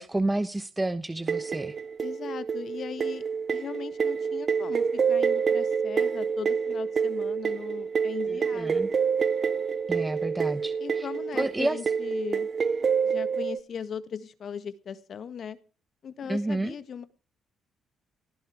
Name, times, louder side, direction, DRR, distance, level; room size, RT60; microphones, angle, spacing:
voice 1, 0.0-1.7 8.3-8.9 9.9-11.1 11.3-11.8 16.3-16.7, right 2 dB, 15° right, 11 dB, 1.0 m, -30 dB
sound 1, 1.3-13.6, right 6 dB, 45° right, 0.7 m, -27 dB
voice 2, 2.0-3.2 3.5-8.9 10.8-12.5 13.0-15.6 16.0-17.1, left 7 dB, 55° left, 13 dB, 1.7 m, -38 dB
18.5 x 11.5 x 4.8 m, 0.38 s
cardioid pair, 90°, 0 cm